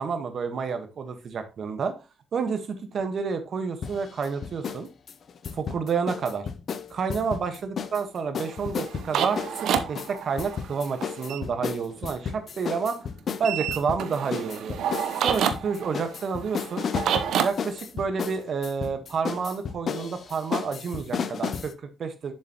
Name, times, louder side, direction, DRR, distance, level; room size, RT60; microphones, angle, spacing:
voice 1, 0.0-1.9 2.3-4.9 5.5-6.5 6.9-13.1 13.4-14.8 15.2-16.8 17.4-22.3, right 5 dB, 55° right, 8 dB, 1.3 m, -29 dB
sound 1, 3.8-4.8 5.1-8.0 8.3-21.7, left 6 dB, 50° left, 0.7 m, -33 dB
sound 2, 8.4-11.4 13.4-17.5, right 8 dB, 75° right, 0.8 m, -29 dB
7.1 x 6.7 x 3.0 m, 0.28 s
cardioid pair, 90°, 0 cm